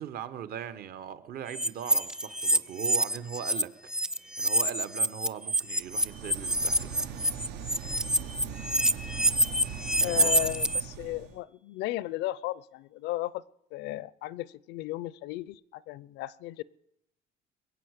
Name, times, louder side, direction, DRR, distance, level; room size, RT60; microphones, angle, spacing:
voice 1, 0.0-3.7 4.4-7.1 9.9-10.3, right 9 dB, 65° right, 1.2 m, -39 dB
sound 1, 1.5-3.6 3.9-10.8, right 1 dB, 5° right, 0.5 m, -26 dB
sound 2, 5.7-11.4, right 7 dB, 90° right, 1.1 m, -40 dB
voice 2, 10.0-13.4 13.7-16.6, left 16 dB, 90° left, 0.6 m, -35 dB
21.5 x 8.1 x 8.1 m
cardioid pair, 110°, 17 cm